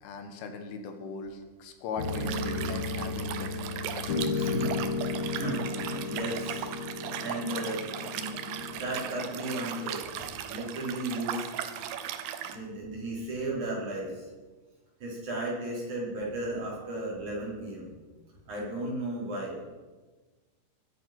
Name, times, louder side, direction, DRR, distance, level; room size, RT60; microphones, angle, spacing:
voice 1, 0.0-3.6 3.9-4.5, left 4 dB, 75° left, 6 dB, 4.0 m, -39 dB
sound 1, 2.0-10.8, left 3 dB, 55° left, 3.0 m, -34 dB
Liquid, 2.0-12.6, right 10 dB, 80° right, 2.4 m, -38 dB
voice 2, 4.3-4.8 5.3-6.7 7.2-10.1 10.5-11.5 12.4-14.3 15.0-17.9 18.5-19.6, right 1 dB, 40° right, -5 dB, 6.0 m, -35 dB
21.5 x 10.0 x 6.2 m, 1.3 s
omnidirectional pair, 5.8 m